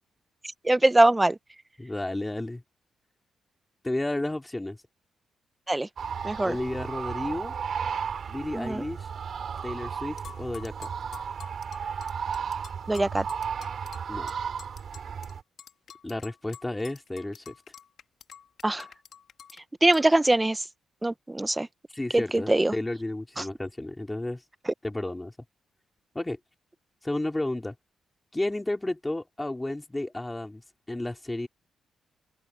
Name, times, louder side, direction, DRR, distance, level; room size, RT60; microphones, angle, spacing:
voice 1, 0.6-1.4 5.7-5.9 6.2-6.6 8.5-8.9 12.9-13.2 18.6-18.8 19.8-20.6 21.0-21.7 22.1-22.7 23.4-23.5, right 2 dB, 15° right, 0.9 m, -22 dB
voice 2, 1.8-2.6 3.8-4.8 6.4-7.5 8.3-9.1 9.6-10.9 14.1-14.3 16.0-17.5 21.9-24.4 24.8-25.3 26.1-26.4 27.0-27.7 28.3-30.6 30.9-31.5, left 1 dB, 10° left, 3.2 m, -32 dB
sound 1, 6.0-15.4, right 7 dB, 55° right, 4.2 m, -34 dB
sound 2, 10.2-15.3 15.6-19.6 19.9-20.0, left 8 dB, 65° left, 2.0 m, -48 dB
cardioid pair, 95°, 0 cm